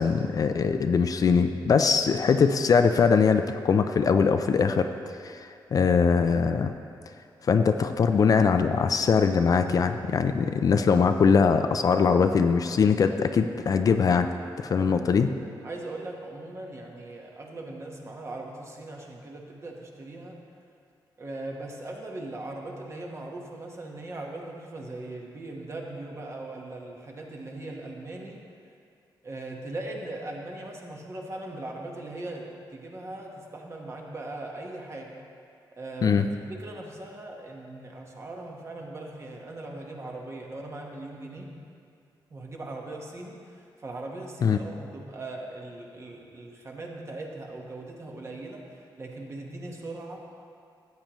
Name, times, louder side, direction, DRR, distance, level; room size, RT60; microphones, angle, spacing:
voice 1, 0.0-4.9 5.2-6.7 7.4-14.3 14.6-15.3 36.0-36.3 44.4-44.6, left 5 dB, 45° left, 8 dB, 0.4 m, -22 dB
voice 2, 15.6-20.4 21.2-28.4 29.2-35.1 35.8-41.5 42.3-50.2, right 2 dB, 35° right, 0 dB, 1.2 m, -39 dB
14.0 x 8.8 x 3.1 m, 2.4 s
wide cardioid pair, 135°, 8 cm